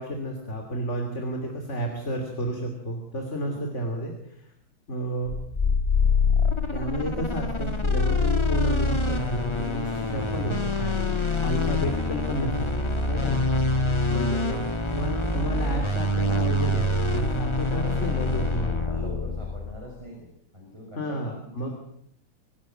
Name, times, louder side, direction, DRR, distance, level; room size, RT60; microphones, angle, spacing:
voice 1, 0.0-4.5 4.9-5.3 6.7-12.7 13.1-14.6 14.9-18.8 21.0-21.7, equal, 35° left, 3 dB, 3.2 m, -32 dB
sound 1, 5.3-19.8, left 2 dB, 15° left, 1.4 m, -25 dB
voice 2, 18.3-20.3 20.5-21.7, equal, 15° right, -1 dB, 5.8 m, -43 dB
25.5 x 12.0 x 9.0 m, 0.72 s
omnidirectional pair, 2.2 m